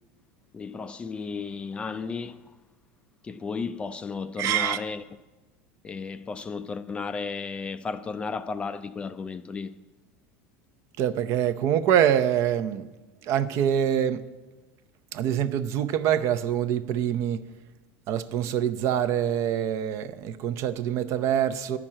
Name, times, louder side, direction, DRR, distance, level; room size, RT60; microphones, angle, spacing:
voice 1, 0.5-2.4 3.2-5.0 5.8-9.8, left 4 dB, 15° left, 0.3 m, -34 dB
voice 2, 4.4-4.8 11.0-12.9 13.3-14.2 15.1-17.4 18.1-21.8, right 10 dB, 50° right, 0.6 m, -25 dB
11.0 x 6.0 x 8.7 m
supercardioid pair, 145°, 6 cm